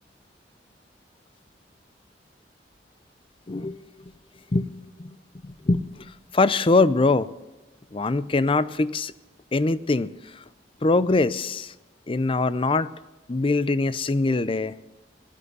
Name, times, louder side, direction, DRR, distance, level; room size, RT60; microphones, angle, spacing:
voice 1, 3.5-3.8 4.5-4.7 5.0-5.2 5.4-5.8 6.3-7.3 7.9-9.1 9.5-10.1 10.8-11.7 12.1-12.9 13.3-14.7, left 3 dB, 30° left, 16 dB, 0.5 m, -22 dB
16.5 x 10.5 x 8.0 m, 1.1 s
head